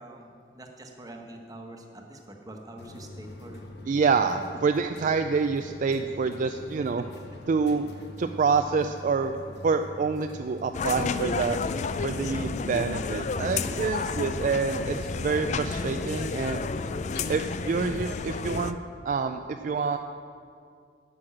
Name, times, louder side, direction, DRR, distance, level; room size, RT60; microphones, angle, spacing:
voice 1, 0.0-3.7 13.6-13.8, right 1 dB, 20° right, 2 dB, 1.1 m, -45 dB
sound 1, 2.8-17.2, left 2 dB, 65° left, 0.9 m, -44 dB
voice 2, 3.9-7.1 7.5-7.9 8.2-9.3 9.6-11.6 12.0-16.6 17.3-18.8 19.0-20.0, right 5 dB, 50° right, 7 dB, 0.3 m, -27 dB
sound 2, 10.7-18.7, left 4 dB, 40° left, 0.4 m, -31 dB
9.8 x 6.1 x 8.6 m, 2.3 s
head